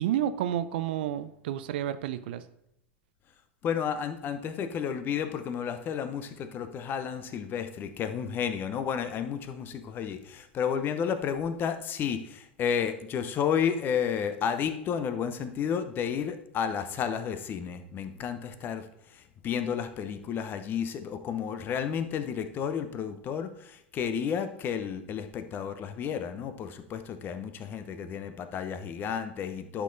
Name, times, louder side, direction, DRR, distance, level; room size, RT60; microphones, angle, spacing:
voice 1, 0.0-2.4, right 11 dB, 60° right, 13 dB, 0.5 m, -30 dB
voice 2, 3.6-18.8 19.1-29.8, left 7 dB, 35° left, 10 dB, 0.8 m, -32 dB
11.0 x 5.9 x 2.7 m, 0.77 s
figure-of-eight pair, 90°, 6 cm